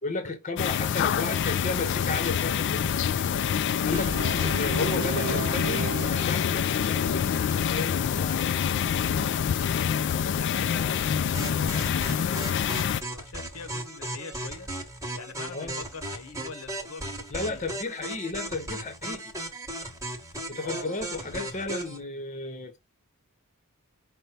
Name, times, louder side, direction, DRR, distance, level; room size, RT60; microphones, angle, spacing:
voice 1, 0.0-2.9 3.8-8.5 10.7-11.1 15.5-15.8 17.3-19.3 20.5-22.8, left 3 dB, 35° left, 0.9 m, -34 dB
sound 1, 0.6-13.0, left 8 dB, 55° left, 0.3 m, -26 dB
voice 2, 3.3-3.7 9.1-9.5 10.3-14.7 15.1-17.6 20.6-20.9, left 4 dB, 70° left, 0.9 m, -43 dB
Brass instrument, 3.9-7.0, right 3 dB, 50° right, 1.0 m, -35 dB
sound 2, 11.3-22.0, right 1 dB, 15° right, 1.1 m, -36 dB
5.4 x 2.2 x 4.2 m
head